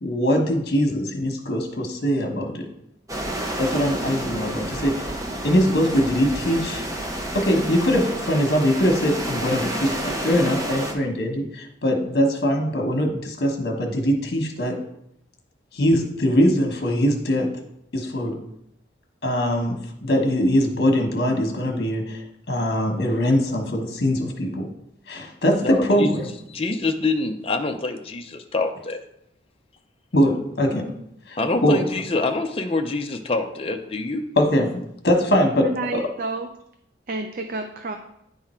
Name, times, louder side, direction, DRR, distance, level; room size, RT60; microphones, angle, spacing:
voice 1, 0.0-2.7 3.6-5.1 5.4-6.8 7.3-14.8 15.7-17.5 17.9-18.4 19.2-22.2 22.5-24.7 25.1-26.2 30.1-30.9 31.3-31.8 34.3-35.7 35.9-36.0, equal, 55° left, 2 dB, 1.2 m, -22 dB
sound 1, 3.1-10.9, right 1 dB, 15° right, 0.7 m, -30 dB
voice 2, 25.6-26.1 26.5-29.0 31.4-34.2, left 3 dB, 30° left, 4 dB, 0.5 m, -25 dB
voice 3, 35.6-36.5 37.1-38.0, right 3 dB, 45° right, 5 dB, 0.4 m, -29 dB
9.6 x 3.7 x 4.3 m, 0.79 s
head